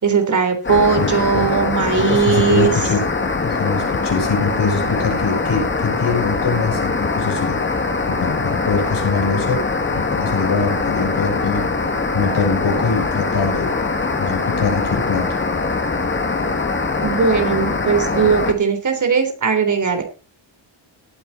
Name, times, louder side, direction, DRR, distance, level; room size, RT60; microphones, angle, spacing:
voice 1, 0.0-2.7 17.0-20.0, right 5 dB, 40° right, 6 dB, 3.6 m, -18 dB
sound 1, 0.6-18.5, left 3 dB, 25° left, 2.1 m, -22 dB
voice 2, 1.9-3.1 3.4-7.6 8.1-9.7 9.9-11.7 12.1-13.7 14.2-15.3, left 4 dB, 60° left, 1 dB, 7.1 m, -23 dB
19.0 x 8.7 x 4.1 m, 0.32 s
wide cardioid pair, 135°, 46 cm